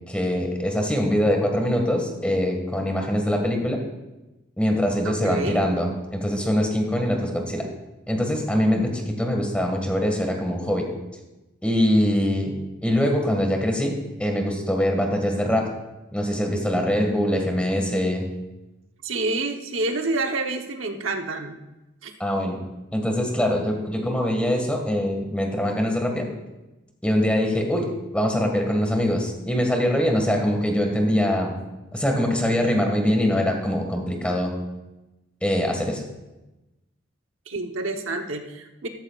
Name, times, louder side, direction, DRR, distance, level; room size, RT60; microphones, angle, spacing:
voice 1, 0.1-3.8 4.6-7.7 8.1-10.9 11.6-12.5 12.8-13.9 14.2-15.7 16.1-18.2 22.2-22.6 22.9-26.3 27.0-31.6 31.9-34.5 35.4-36.0, equal, 5° left, 2 dB, 1.8 m, -23 dB
voice 2, 5.0-5.6 19.0-21.6 22.0-22.1 37.5-38.9, right 2 dB, 80° right, 4 dB, 1.0 m, -28 dB
14.0 x 13.5 x 2.4 m, 1.0 s
head